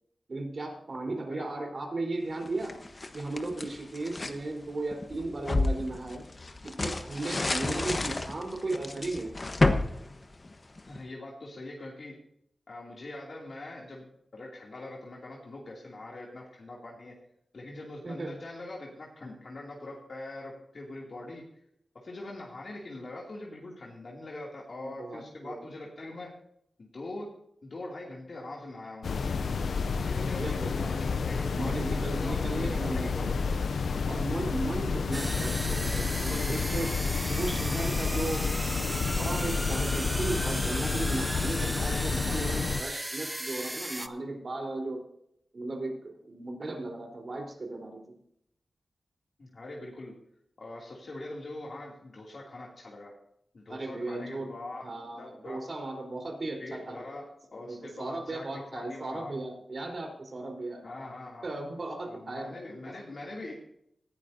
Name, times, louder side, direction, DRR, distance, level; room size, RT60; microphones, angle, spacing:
voice 1, 0.3-2.8 3.1-6.3 6.6-9.3 18.0-18.4 24.8-25.6 30.3-31.2 31.5-33.5 34.1-36.9 37.3-38.5 39.0-45.0 45.5-48.2 53.7-54.5 54.8-57.0 57.7-60.8 61.4-62.5, right 2 dB, 55° right, 2 dB, 4.0 m, -36 dB
sound 1, 2.4-4.4 4.9-11.0, left 2 dB, 40° left, 1.2 m, -31 dB
voice 2, 7.7-8.1 10.9-12.1 12.7-14.0 14.3-17.1 17.5-21.4 22.0-26.3 26.8-27.3 27.6-29.5 30.0-33.7 49.4-50.1 50.6-53.1 53.5-54.9 55.2-55.6 56.6-57.2 57.5-59.3 60.8-61.5 62.0-63.5, left 2 dB, 60° left, -3 dB, 2.7 m, -42 dB
sound 2, 29.0-42.8, left 5 dB, 80° left, 0.5 m, -30 dB
sound 3, 35.1-44.1, right 1 dB, 15° right, 0.7 m, -36 dB
18.0 x 11.0 x 2.7 m, 0.72 s
cardioid pair, 55°, 0 cm